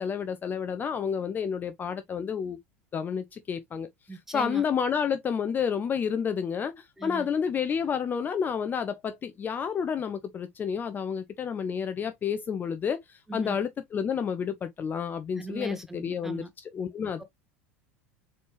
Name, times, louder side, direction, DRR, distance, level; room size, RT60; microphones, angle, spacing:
voice 1, 0.0-2.6 2.9-16.4 16.7-17.2, left 7 dB, 25° left, 0.5 m, -30 dB
voice 2, 4.1-4.6 7.0-7.3 13.3-13.6 15.4-16.5 17.2-17.3, right 2 dB, 5° right, 0.9 m, -39 dB
4.2 x 3.2 x 3.0 m
figure-of-eight pair, 80°, 7 cm